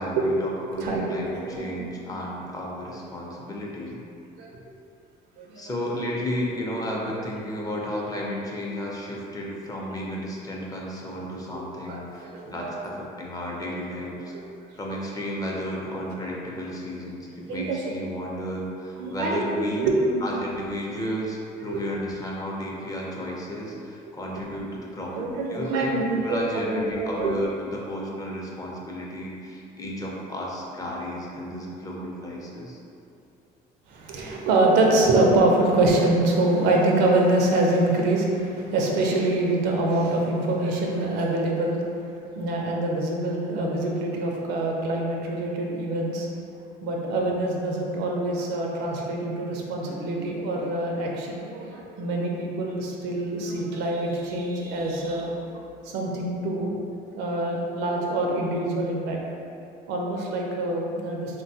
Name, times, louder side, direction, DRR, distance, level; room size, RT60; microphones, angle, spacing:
voice 1, 0.0-4.0 5.6-14.3 14.7-19.8 20.2-26.0 26.2-32.8, equal, 20° left, -3 dB, 0.5 m, -33 dB
voice 2, 0.8-1.9 4.4-4.7 5.4-5.7 11.9-12.9 14.3-14.4 17.5-17.8 19.0-20.2 21.6-21.8 25.1-27.3 33.9-41.8 42.4-46.3 46.8-55.4 55.8-56.7 57.1-59.2 59.9-61.4, right 2 dB, 90° right, -1 dB, 0.5 m, -25 dB
3.3 x 2.2 x 2.7 m, 2.7 s
cardioid pair, 110°, 17 cm